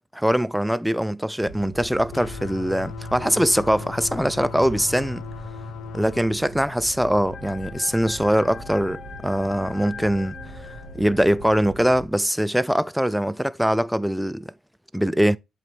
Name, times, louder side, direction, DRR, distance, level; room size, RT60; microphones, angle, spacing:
voice 1, 0.1-5.2 5.9-10.7 10.9-14.5 14.9-15.4, equal, ahead, 0.4 m, -22 dB
sound 1, 1.4-12.0, right 2 dB, 85° right, 1.5 m, -41 dB
sound 2, 2.1-6.3, left 5 dB, 80° left, 1.0 m, -37 dB
sound 3, 7.3-11.8, left 6 dB, 45° left, 0.7 m, -42 dB
8.0 x 4.3 x 3.4 m
cardioid pair, 90°, 0 cm